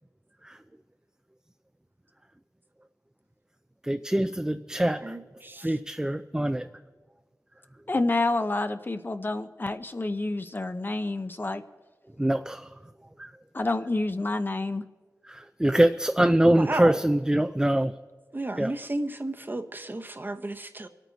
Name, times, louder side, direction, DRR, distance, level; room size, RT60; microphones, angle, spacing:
voice 1, 3.9-5.0 5.6-6.7 12.2-12.7 13.2-13.3 15.3-17.9 18.6-18.7, right 1 dB, 10° right, 7 dB, 0.5 m, -23 dB
voice 2, 5.0-5.8 16.6-17.0 18.3-20.9, right 2 dB, 35° right, 7 dB, 1.0 m, -33 dB
voice 3, 7.9-11.6 13.5-14.8, left 2 dB, 35° left, 10 dB, 0.6 m, -28 dB
25.0 x 9.1 x 4.0 m, 1.4 s
cardioid pair, 50°, 6 cm